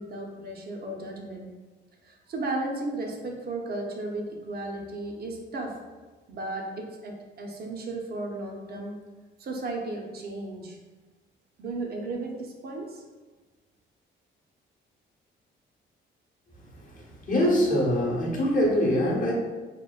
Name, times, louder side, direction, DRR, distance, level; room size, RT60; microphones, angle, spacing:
voice 1, 0.0-1.5 2.0-5.8 6.3-8.9 9.4-10.8 11.6-13.0, right 2 dB, 55° right, 1 dB, 0.5 m, -34 dB
voice 2, 16.8-19.3, equal, 40° left, -3 dB, 0.8 m, -24 dB
2.8 x 2.1 x 2.3 m, 1.3 s
cardioid pair, 90°, 20 cm